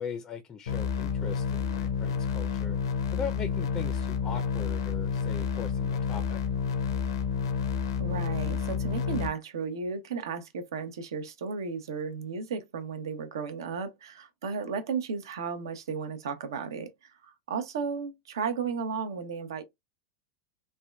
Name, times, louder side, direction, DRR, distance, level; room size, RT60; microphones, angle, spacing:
voice 1, 0.0-2.8 3.1-6.4, left 6 dB, 30° left, 0.4 m, -39 dB
sound 1, 0.7-9.3, left 6 dB, 80° left, 0.7 m, -30 dB
voice 2, 8.0-19.6, right 5 dB, 80° right, 0.7 m, -34 dB
3.5 x 2.2 x 2.2 m
hypercardioid pair, 110°, 2 cm